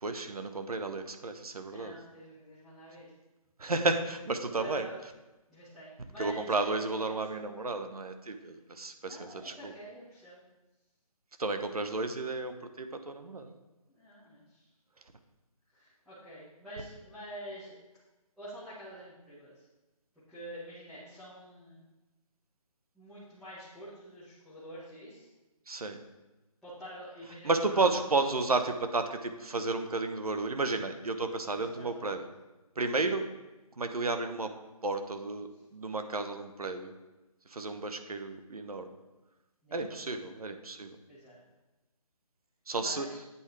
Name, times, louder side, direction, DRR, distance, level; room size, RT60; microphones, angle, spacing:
voice 1, 0.0-1.9 3.6-4.9 6.2-9.7 11.4-13.5 25.7-26.0 27.4-32.3 32.8-33.2 33.8-34.5 34.8-36.9 37.5-38.9 39.7-40.9 42.7-43.1, right 3 dB, 75° right, 7 dB, 1.0 m, -32 dB
voice 2, 1.7-3.1 4.5-5.0 5.5-7.5 9.0-10.4 13.9-14.7 15.7-17.7 18.4-19.6 20.3-21.8 22.9-25.3 26.6-28.0 31.5-32.3 33.2-33.3 35.5-35.6 39.6-39.9 41.1-41.4 42.8-43.2, equal, ahead, -16 dB, 1.5 m, -47 dB
8.3 x 8.2 x 3.3 m, 1.1 s
figure-of-eight pair, 155°, 19 cm